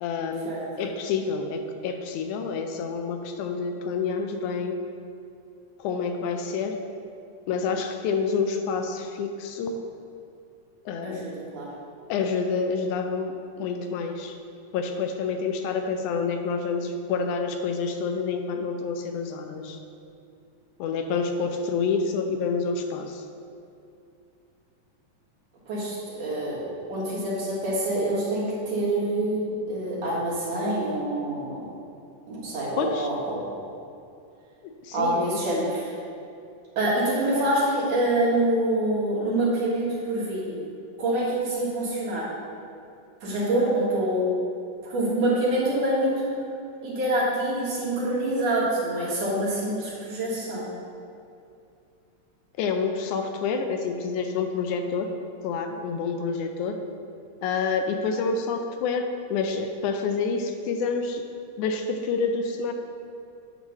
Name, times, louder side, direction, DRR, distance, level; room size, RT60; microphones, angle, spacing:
voice 1, 0.0-0.5 0.8-4.8 5.8-6.8 7.5-9.7 10.9-11.2 12.1-14.4 14.7-19.8 20.8-23.2 32.8-33.1 34.8-35.4 52.6-55.1 55.4-56.8 57.4-61.2 61.6-62.7, left 5 dB, 80° left, 5 dB, 1.9 m, -28 dB
voice 2, 11.0-11.7 25.7-31.7 32.3-33.5 34.9-36.0 36.8-40.6 41.0-42.3 43.2-44.3 44.9-46.4 46.8-50.6, right 1 dB, 60° right, -7 dB, 2.7 m, -26 dB
9.1 x 3.1 x 6.5 m, 2.6 s
omnidirectional pair, 3.6 m